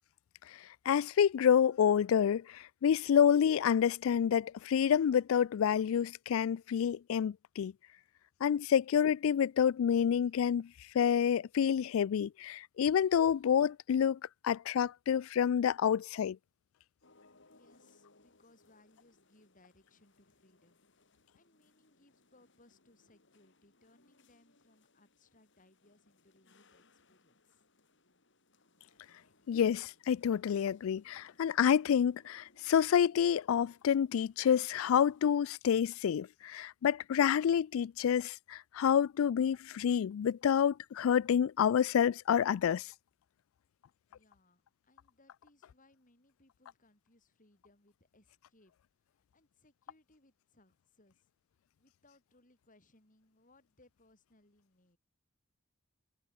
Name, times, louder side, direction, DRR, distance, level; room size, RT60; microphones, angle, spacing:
voice 1, 0.9-7.7 8.4-10.7 10.9-16.4 29.5-42.9, left 8 dB, 80° left, 0.3 m, -28 dB
sound 1, 17.0-35.5, left 3 dB, 65° left, 5.5 m, -69 dB
voice 2, 17.5-20.8 21.0-27.7 44.1-48.7 49.0-51.3 51.8-55.0, left 2 dB, 40° left, 6.8 m, -68 dB
head